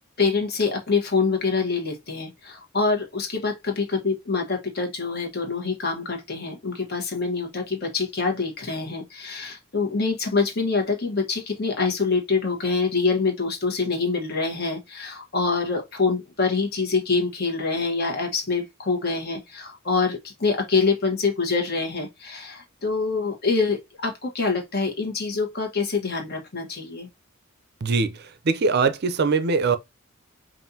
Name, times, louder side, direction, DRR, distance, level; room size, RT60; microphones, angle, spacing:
voice 1, 0.2-27.1, left 4 dB, 50° left, 1.3 m, -25 dB
voice 2, 27.8-29.8, right 4 dB, 50° right, 0.5 m, -22 dB
5.3 x 2.5 x 2.7 m
head